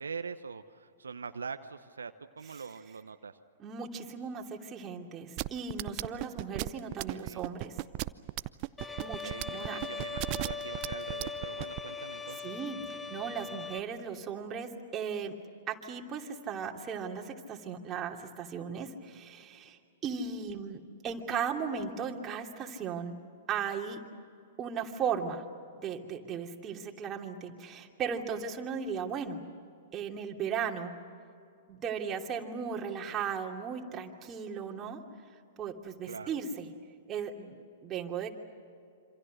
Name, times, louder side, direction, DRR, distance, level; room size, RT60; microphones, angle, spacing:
voice 1, 0.0-3.4 6.6-6.7 7.1-7.4 9.0-12.6 32.9-33.2 36.1-36.4, right 5 dB, 85° right, 8 dB, 0.9 m, -43 dB
voice 2, 3.6-7.8 9.0-9.2 9.5-9.8 12.4-15.3 15.7-23.2 23.5-24.0 24.6-25.4 25.7-29.4 29.9-30.9 31.7-35.0 35.6-36.7 37.1-38.3, right 6 dB, 25° right, 1 dB, 2.9 m, -36 dB
sound 1, 5.4-11.8, right 21 dB, 45° right, 0.6 m, -34 dB
Bowed string instrument, 8.8-13.8, left 5 dB, 10° left, 1.2 m, -40 dB
27.0 x 26.5 x 6.6 m, 2.4 s
hypercardioid pair, 115°, 0 cm